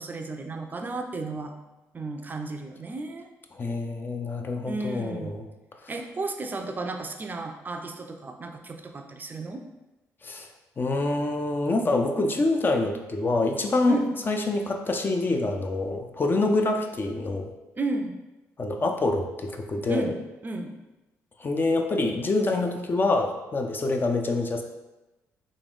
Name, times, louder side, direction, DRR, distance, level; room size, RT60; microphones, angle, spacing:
voice 1, 0.0-1.5 1.9-3.3 4.6-5.4 5.9-9.6 13.9-14.1 17.8-18.2 19.9-20.2 20.4-20.7, right 2 dB, 30° right, 4 dB, 0.4 m, -33 dB
voice 2, 3.5-5.5 10.2-10.5 10.8-14.0 14.3-17.5 18.6-20.1 21.4-24.6, left 2 dB, 35° left, 4 dB, 0.5 m, -26 dB
3.6 x 2.5 x 3.5 m, 1.0 s
supercardioid pair, 70°, 6 cm